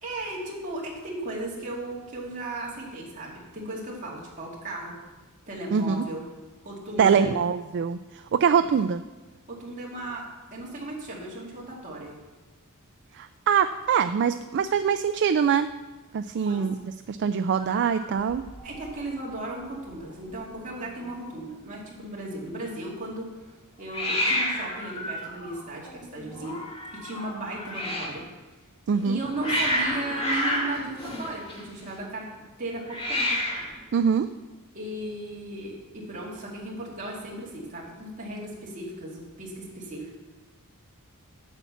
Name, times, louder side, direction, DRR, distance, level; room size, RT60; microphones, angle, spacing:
voice 1, 0.0-5.0 5.5-6.3 6.6-7.4 8.5-8.6 9.5-10.2 10.5-12.1 16.4-16.7 18.6-26.6 26.9-28.2 29.0-32.3 32.6-33.4 34.7-40.1, right 2 dB, 35° right, -4 dB, 2.6 m, -36 dB
voice 2, 5.7-6.1 7.0-8.0 8.3-9.0 13.2-15.7 16.1-16.7 17.1-18.4 28.9-29.2 33.9-34.3, right 7 dB, 55° right, 10 dB, 0.3 m, -23 dB
Hiss, 17.6-18.9 19.2-19.7 19.9-20.0 20.2-20.9 23.9-28.2 28.9-31.9 32.8-33.8, left 1 dB, 25° left, 2.1 m, -30 dB
8.1 x 7.2 x 7.1 m, 1.2 s
head